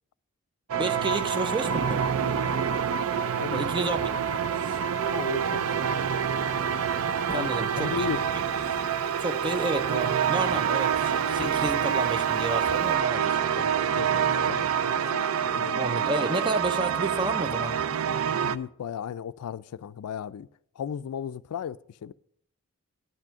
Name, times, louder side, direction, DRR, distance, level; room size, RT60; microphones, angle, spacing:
sound 1, 0.7-18.6, right 7 dB, 70° right, 0.4 m, -27 dB
voice 1, 0.8-2.1 3.5-4.0 7.3-8.1 9.2-13.7 15.5-17.8, right 2 dB, 20° right, 0.6 m, -31 dB
Speech, 1.0-12.9, right 1 dB, 50° right, 2.6 m, -47 dB
voice 2, 5.1-5.9 7.3-7.5 7.8-8.2 13.9-15.8 18.4-20.5 20.8-22.1, left 8 dB, 90° left, 0.3 m, -35 dB
11.0 x 6.1 x 6.6 m
head